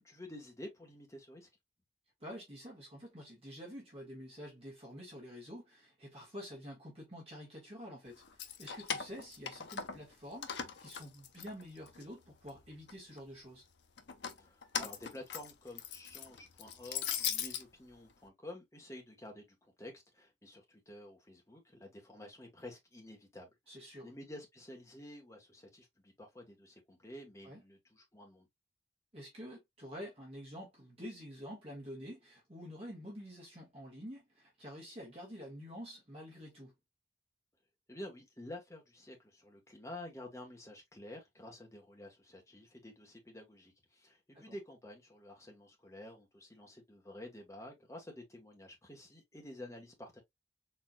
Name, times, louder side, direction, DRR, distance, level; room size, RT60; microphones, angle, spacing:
voice 1, 0.0-1.5 14.4-28.5 37.9-50.2, left 1 dB, 15° left, 1.3 m, -50 dB
voice 2, 2.2-13.7 23.7-24.1 27.4-27.6 29.1-36.7 44.3-44.5, equal, 30° right, 1.6 m, -48 dB
Keys jangling, 8.2-10.1 10.4-12.0 12.5-13.2 14.0-17.6, left 8 dB, 60° left, 0.6 m, -40 dB
4.2 x 3.5 x 2.3 m
head